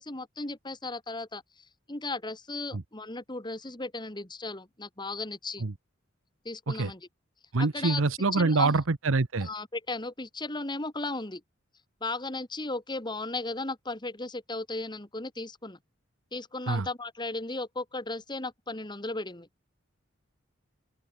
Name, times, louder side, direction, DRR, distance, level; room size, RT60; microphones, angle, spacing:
voice 1, 0.0-1.4 1.9-5.6 6.4-7.1 7.6-8.0 8.3-8.7 9.4-11.4 12.0-15.8 16.3-19.5, left 2 dB, 20° left, 2.4 m, -36 dB
voice 2, 7.5-9.5 16.7-16.9, right 3 dB, 75° right, 0.9 m, -25 dB
open air
head